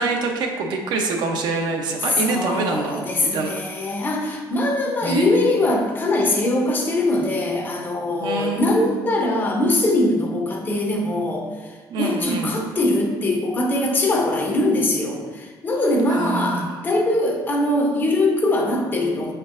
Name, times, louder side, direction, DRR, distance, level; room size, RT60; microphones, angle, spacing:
voice 1, 0.0-3.5 5.0-5.5 8.2-8.9 11.9-12.5 16.1-16.7, right 3 dB, 65° right, 3 dB, 0.6 m, -25 dB
voice 2, 2.1-19.3, left 1 dB, 25° left, 1 dB, 0.6 m, -22 dB
4.9 x 4.3 x 2.4 m, 1.4 s
cardioid pair, 160°, 8 cm